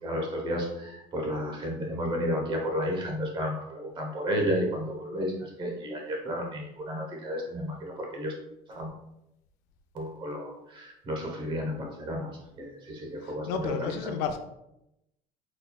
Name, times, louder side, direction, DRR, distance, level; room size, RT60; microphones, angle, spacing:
voice 1, 0.0-8.3 8.7-8.9 9.9-14.2, equal, 30° right, 1 dB, 0.9 m, -32 dB
voice 2, 13.2-14.4, left 6 dB, 85° left, 6 dB, 0.5 m, -32 dB
4.2 x 4.2 x 2.3 m, 0.85 s
cardioid pair, 175°, 17 cm